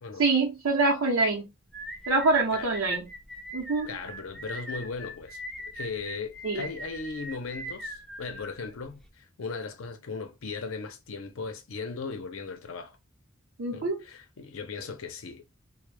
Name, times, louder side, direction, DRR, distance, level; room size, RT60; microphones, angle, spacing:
voice 1, 0.2-1.4 2.1-3.1 3.5-4.0 6.4-6.7 13.6-14.0, right 3 dB, 70° right, 0.7 m, -25 dB
sound 1, 1.7-9.1, equal, 5° left, 0.4 m, -40 dB
voice 2, 3.8-5.4 5.7-13.0 13.7-15.5, left 4 dB, 80° left, 0.6 m, -37 dB
2.1 x 2.1 x 3.1 m
head